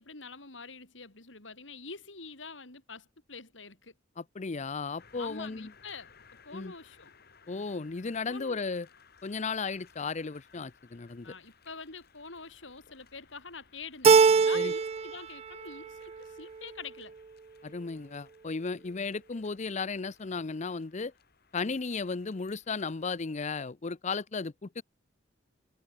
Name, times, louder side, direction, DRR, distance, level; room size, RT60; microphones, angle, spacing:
voice 1, 0.0-3.9 5.1-6.1 6.4-7.1 8.3-8.6 11.2-17.1, left 4 dB, 85° left, 4.8 m, -46 dB
voice 2, 4.2-5.7 6.5-6.7 7.5-8.9 9.2-11.3 14.5-14.7 17.6-21.1 21.5-24.8, left 4 dB, 40° left, 0.6 m, -35 dB
sound 1, 5.0-23.3, left 6 dB, 55° left, 4.1 m, -61 dB
Keyboard (musical), 14.0-15.2 15.5-16.2, right 5 dB, 35° right, 0.3 m, -22 dB
head